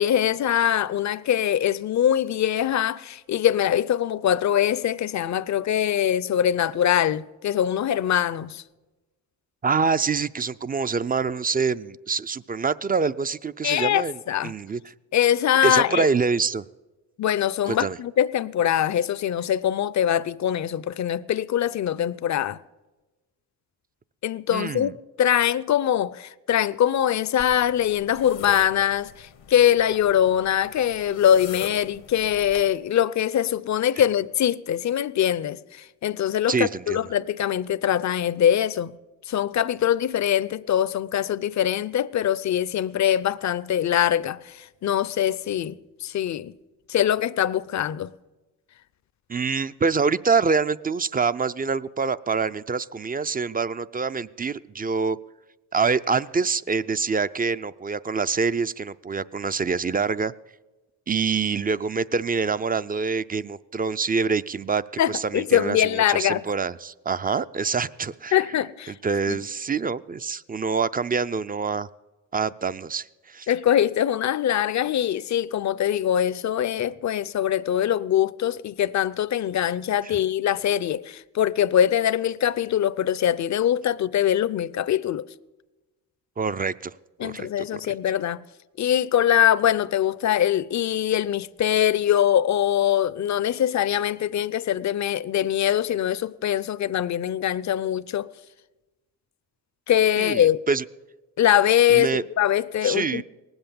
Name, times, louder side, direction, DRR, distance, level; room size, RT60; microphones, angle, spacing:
voice 1, 0.0-8.6 13.6-14.5 15.1-16.1 17.2-22.6 24.2-24.9 25.2-39.0 39.3-46.5 46.9-48.1 65.0-66.4 68.3-68.9 69.3-69.4 73.5-85.3 87.2-88.4 88.8-98.3 99.9-100.6 101.4-103.2, left 10 dB, 40° left, 0.6 m, -23 dB
voice 2, 9.6-14.1 14.4-14.9 15.6-16.6 17.6-18.0 24.5-24.9 36.5-37.0 49.3-55.2 55.7-60.3 61.1-64.8 65.1-68.4 69.0-71.9 72.3-73.5 80.0-80.2 86.4-86.9 87.2-87.8 100.2-100.8 101.9-102.2 102.8-103.2, right 5 dB, 20° right, 0.4 m, -25 dB
sound 1, 27.4-32.7, left 9 dB, 85° left, 1.3 m, -41 dB
19.0 x 8.0 x 7.0 m
supercardioid pair, 60°, 44 cm